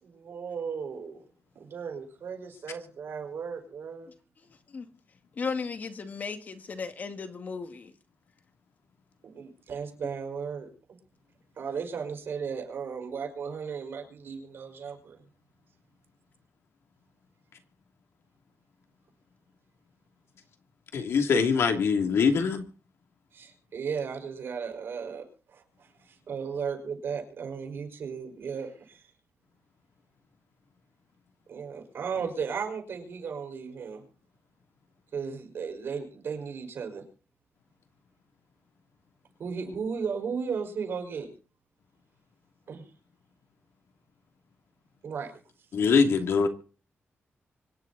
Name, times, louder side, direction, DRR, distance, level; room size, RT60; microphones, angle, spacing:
voice 1, 0.2-1.2 1.6-4.1 9.2-10.7 11.6-15.2 23.3-29.0 31.5-34.0 35.1-37.0 39.4-41.3 42.7-42.8 45.0-45.3, right 6 dB, 65° right, 5.3 m, -35 dB
voice 2, 5.4-7.9, left 5 dB, 40° left, 2.0 m, -35 dB
voice 3, 20.9-22.7 45.7-46.5, left 5 dB, 80° left, 2.9 m, -23 dB
25.0 x 10.5 x 4.2 m
wide cardioid pair, 175°, 4 cm